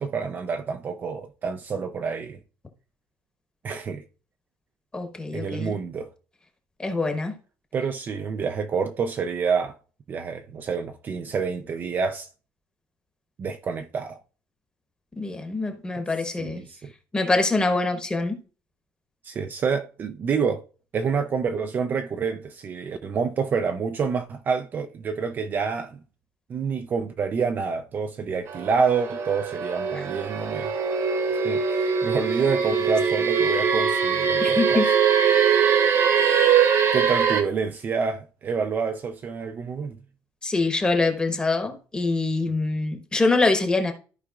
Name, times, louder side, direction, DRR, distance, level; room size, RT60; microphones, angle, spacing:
voice 1, 0.0-2.4 3.6-4.0 5.3-6.1 7.7-9.7 10.1-12.3 13.4-14.2 16.4-16.8 19.2-20.6 20.9-26.0 26.5-30.7 31.4-34.8 36.3-40.0, right 5 dB, 30° right, 0.5 m, -28 dB
voice 2, 4.9-5.8 6.8-7.3 15.2-16.6 17.1-18.4 29.9-30.0 34.4-34.9 36.1-36.4 40.4-43.9, left 3 dB, 10° left, 1.1 m, -24 dB
sound 1, 28.5-37.4, right 6 dB, 45° right, 1.2 m, -22 dB
14.0 x 4.9 x 2.4 m
cardioid pair, 175°, 7 cm